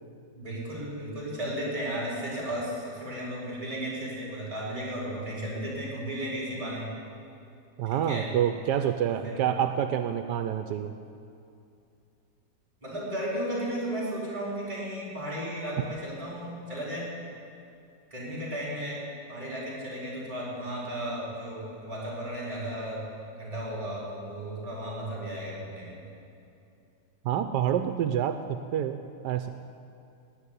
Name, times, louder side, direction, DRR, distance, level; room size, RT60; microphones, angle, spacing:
voice 1, 0.3-6.9 7.9-8.3 9.1-9.5 12.8-17.1 18.1-23.0 23.4-26.0, right 1 dB, 20° right, -6 dB, 4.9 m, -34 dB
voice 2, 7.8-10.9 27.2-29.5, right 9 dB, 85° right, 8 dB, 1.2 m, -28 dB
17.5 x 6.5 x 9.7 m, 2.6 s
omnidirectional pair, 1.8 m